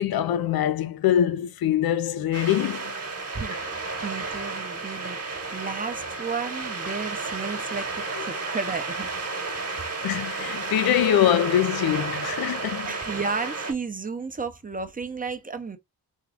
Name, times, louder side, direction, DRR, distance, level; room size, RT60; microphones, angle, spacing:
voice 1, 0.0-2.9 8.2-8.3 9.4-12.9, left 11 dB, 70° left, 0.5 m, -24 dB
sound 1, 2.3-13.7, right 3 dB, 40° right, 1.2 m, -32 dB
voice 2, 3.3-9.1 12.9-15.8, right 4 dB, 25° right, 0.6 m, -33 dB
3.6 x 2.3 x 3.4 m
cardioid pair, 70°, 37 cm